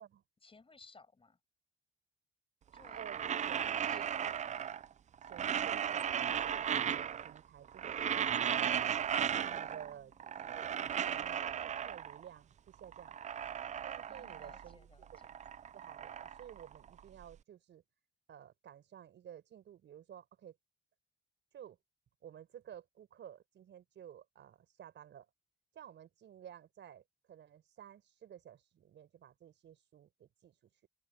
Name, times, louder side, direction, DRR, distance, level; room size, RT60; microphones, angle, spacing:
voice 1, 0.4-1.4 2.7-4.2 4.5-4.7 9.4-10.2 14.1-15.3, left 4 dB, 25° left, 6.8 m, -61 dB
sound 1, 2.7-4.9 5.2-7.4 7.7-9.9 10.2-12.3 12.7-14.7 15.0-17.2, right 8 dB, 35° right, 0.4 m, -36 dB
voice 2, 3.0-3.6 3.9-4.4 5.2-6.1 6.4-8.6 9.5-13.2 13.8-15.4 15.7-17.8 18.3-20.6 21.5-21.8 22.2-25.3 25.7-30.9, right 10 dB, 65° right, 5.1 m, -54 dB
open air
cardioid pair, 90°, 20 cm